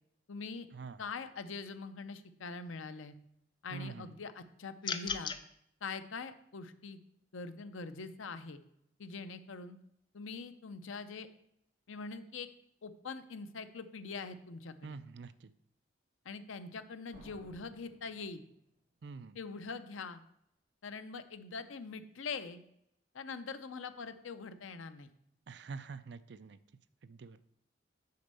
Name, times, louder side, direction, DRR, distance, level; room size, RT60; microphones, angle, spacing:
voice 1, 0.3-0.7 1.0-3.1 3.6-5.3 5.8-7.0 7.3-8.6 9.0-9.8 10.1-11.3 11.9-12.5 12.8-15.0 16.2-18.4 19.3-20.2 20.8-22.6 23.1-25.1, left 4 dB, 85° left, 11 dB, 0.6 m, -43 dB
voice 2, 3.7-4.1 14.8-15.5 19.0-19.4 25.5-26.6 27.0-27.4, right 4 dB, 60° right, 14 dB, 0.4 m, -46 dB
sound 1, 4.8-5.4, left 6 dB, 25° left, 0.4 m, -36 dB
sound 2, 17.1-18.9, right 1 dB, 45° right, 2.2 m, -59 dB
6.6 x 5.3 x 6.7 m, 0.76 s
head